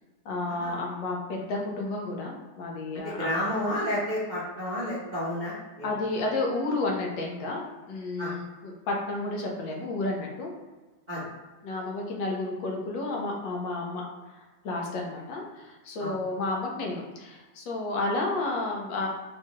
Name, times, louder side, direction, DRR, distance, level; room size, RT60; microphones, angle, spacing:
voice 1, 0.2-3.4 5.8-7.6 7.9-10.5 11.6-14.0 14.6-19.1, left 2 dB, 85° left, -1 dB, 1.5 m, -31 dB
voice 2, 3.0-5.9 8.2-8.3 11.1-11.3 16.0-16.1, left 1 dB, 40° right, -9 dB, 0.6 m, -31 dB
4.6 x 2.3 x 2.9 m, 1.2 s
omnidirectional pair, 2.0 m